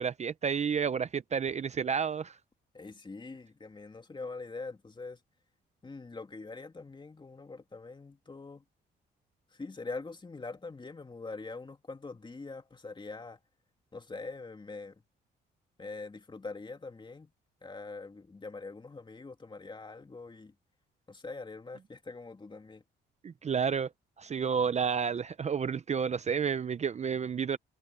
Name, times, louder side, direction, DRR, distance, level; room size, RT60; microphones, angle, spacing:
voice 1, 0.0-2.4 23.2-23.9 24.2-27.6, right 6 dB, 35° right, 0.6 m, -30 dB
voice 2, 2.7-5.2 5.8-8.6 9.5-13.4 13.9-15.0 15.8-17.3 17.6-20.5 21.1-22.8, left 3 dB, 25° left, 2.6 m, -43 dB
cardioid pair, 90°, 20 cm